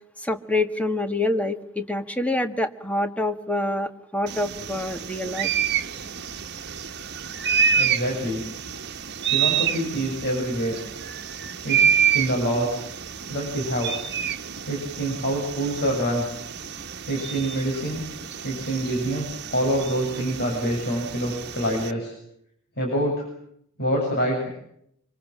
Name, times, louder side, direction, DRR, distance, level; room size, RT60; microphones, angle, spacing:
voice 1, 0.2-5.5, left 2 dB, 5° left, 7 dB, 1.8 m, -26 dB
sound 1, 4.3-21.9, right 7 dB, 55° right, 1.5 m, -28 dB
voice 2, 7.7-8.4 9.3-10.8 11.6-12.9 13.3-13.9 14.7-16.2 17.1-18.0 18.4-22.1 22.8-23.1 23.8-24.5, right 1 dB, 55° left, 0 dB, 7.7 m, -26 dB
26.5 x 24.5 x 7.3 m, 0.72 s
head